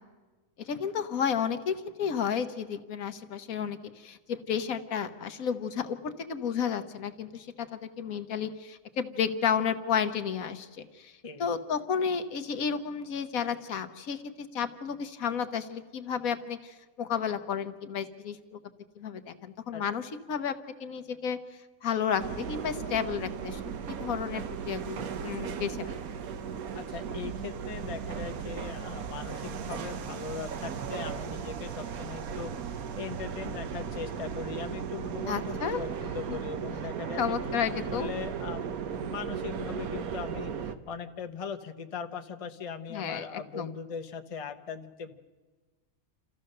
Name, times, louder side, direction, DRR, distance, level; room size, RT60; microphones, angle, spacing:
voice 1, 0.6-11.1 11.4-14.2 14.5-18.6 19.0-21.4 21.8-23.6 23.9-26.0 35.3-35.8 36.3-36.4 37.2-38.1 42.9-43.7, left 7 dB, 75° left, 10 dB, 1.4 m, -32 dB
sound 1, 22.2-40.8, right 7 dB, 80° right, 1.3 m, -36 dB
voice 2, 26.7-32.5 33.0-38.7 39.0-45.1, left 6 dB, 30° left, 6 dB, 0.8 m, -40 dB
28.0 x 14.5 x 6.6 m, 1.3 s
omnidirectional pair, 1.5 m